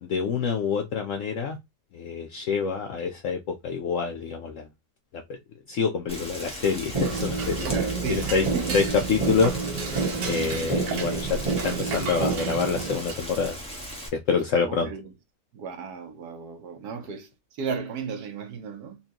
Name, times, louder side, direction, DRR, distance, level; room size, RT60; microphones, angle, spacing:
voice 1, 0.0-1.6 1.9-4.7 5.1-5.4 5.7-8.5 8.7-13.6 14.1-14.9, left 5 dB, 70° left, 0.7 m, -27 dB
Rain, 6.1-14.1, equal, 5° left, 0.8 m, -38 dB
Dishes pots and pans / Cutlery silverware, 6.6-13.5, right 4 dB, 85° right, 1.7 m, -36 dB
sound 1, 6.9-12.9, right 4 dB, 40° right, 0.4 m, -29 dB
voice 2, 7.7-8.8 14.7-15.1 15.5-19.0, right 6 dB, 70° right, 1.2 m, -35 dB
4.2 x 2.6 x 2.8 m
omnidirectional pair, 1.8 m